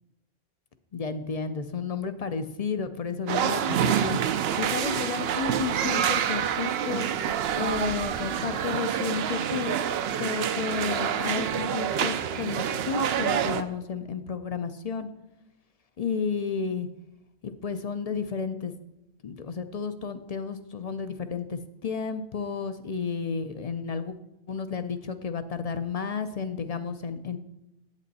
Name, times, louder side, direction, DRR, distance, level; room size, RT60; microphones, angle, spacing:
voice 1, 0.9-7.1 7.6-9.8 10.2-15.1 16.0-16.9 17.4-18.7 19.2-24.2 24.5-27.4, left 5 dB, 45° left, 10 dB, 0.5 m, -32 dB
sound 1, 3.3-13.6, right 9 dB, 75° right, 0.8 m, -27 dB
8.4 x 8.2 x 4.1 m, 0.91 s
omnidirectional pair, 1.1 m